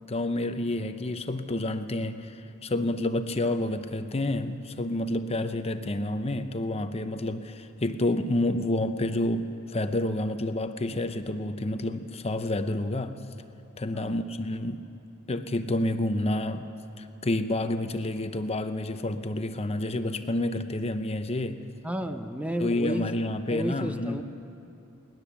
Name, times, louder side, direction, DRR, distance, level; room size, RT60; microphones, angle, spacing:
voice 1, 0.1-13.2 13.8-14.9 15.3-16.7 17.0-21.6 22.6-24.2, left 1 dB, 30° left, 9 dB, 0.7 m, -29 dB
voice 2, 21.8-23.1 23.5-24.2, equal, 5° right, 7 dB, 0.7 m, -32 dB
20.0 x 19.0 x 7.1 m, 2.7 s
head